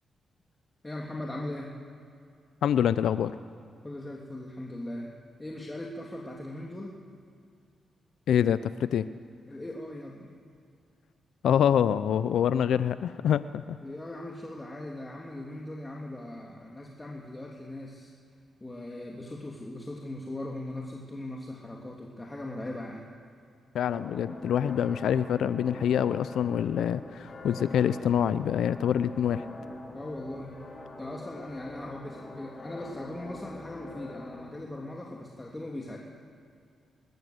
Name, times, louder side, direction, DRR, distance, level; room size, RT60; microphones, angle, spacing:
voice 1, 0.8-1.7 3.8-5.1 5.4-7.0 9.5-10.3 13.8-18.1 18.6-23.1 29.9-30.5 31.0-36.0, left 1 dB, 20° left, -1 dB, 3.0 m, -39 dB
voice 2, 2.6-3.4 8.3-9.1 11.4-13.8 23.7-29.5, left 9 dB, 80° left, 14 dB, 0.5 m, -26 dB
sound 1, 23.9-34.4, left 2 dB, 45° left, 4.8 m, -44 dB
21.0 x 20.5 x 8.1 m, 2.4 s
supercardioid pair, 50°, 0 cm